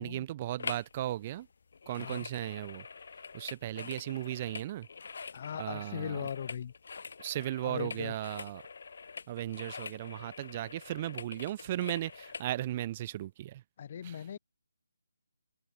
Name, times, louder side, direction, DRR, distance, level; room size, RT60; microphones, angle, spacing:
voice 1, 0.0-1.5 1.9-2.9 3.3-4.9 5.6-6.3 7.2-8.6 9.3-13.6 14.0-14.2, right 13 dB, 25° right, 1.7 m, -36 dB
sound 1, 0.6-1.0 1.2-12.5 13.0-13.1, left 5 dB, 60° left, 1.2 m, -45 dB
voice 2, 1.9-2.3 5.3-6.7 7.6-8.1 13.8-14.4, left 8 dB, 40° left, 2.6 m, -39 dB
open air
hypercardioid pair, 160°, 0 cm